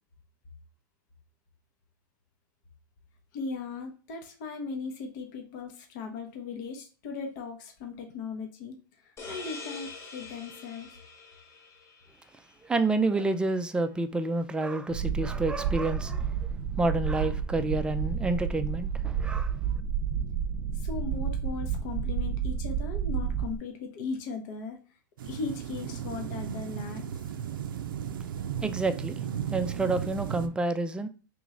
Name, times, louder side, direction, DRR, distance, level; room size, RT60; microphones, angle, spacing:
voice 1, 3.3-8.8 9.0-10.9 20.7-24.8 25.2-27.4, left 4 dB, 60° left, 0.8 m, -38 dB
sound 1, 9.2-12.6, left 4 dB, 25° left, 1.1 m, -44 dB
voice 2, 12.6-16.5 16.8-19.5 28.6-29.2 29.5-31.1, right 2 dB, 10° right, 0.4 m, -29 dB
sound 2, 14.9-23.6, right 7 dB, 45° right, 0.7 m, -30 dB
sound 3, 25.2-30.5, right 9 dB, 85° right, 0.4 m, -35 dB
3.0 x 3.0 x 3.7 m
hypercardioid pair, 115°, 11 cm